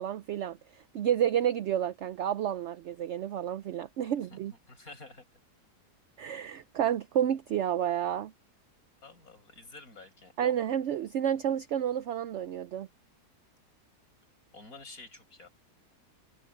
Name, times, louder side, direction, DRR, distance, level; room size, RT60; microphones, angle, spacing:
voice 1, 0.0-4.5 6.2-8.3 10.4-12.9, right 10 dB, 70° right, 0.7 m, -30 dB
voice 2, 4.7-5.2 9.0-10.3 14.5-15.5, left 3 dB, 60° left, 8.0 m, -49 dB
omnidirectional pair, 1.7 m